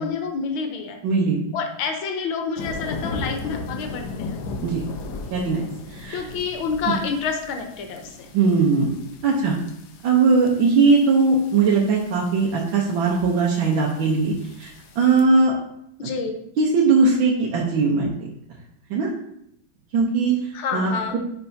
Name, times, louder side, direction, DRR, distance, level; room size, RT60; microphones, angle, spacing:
voice 1, 0.0-1.0 1.5-4.4 6.1-8.3 16.0-16.3 20.5-21.2, left 5 dB, 85° left, 4 dB, 1.7 m, -28 dB
voice 2, 1.0-1.4 4.6-4.8 5.3-6.3 8.3-8.9 9.2-9.6 10.0-14.7 14.9-15.5 16.0-16.1 16.6-18.1 18.9-19.1 19.9-20.4 20.7-21.2, right 4 dB, 75° right, -3 dB, 1.7 m, -19 dB
sound 1, 2.6-15.2, left 3 dB, 65° left, 1.2 m, -37 dB
10.0 x 4.5 x 2.7 m, 0.74 s
omnidirectional pair, 2.2 m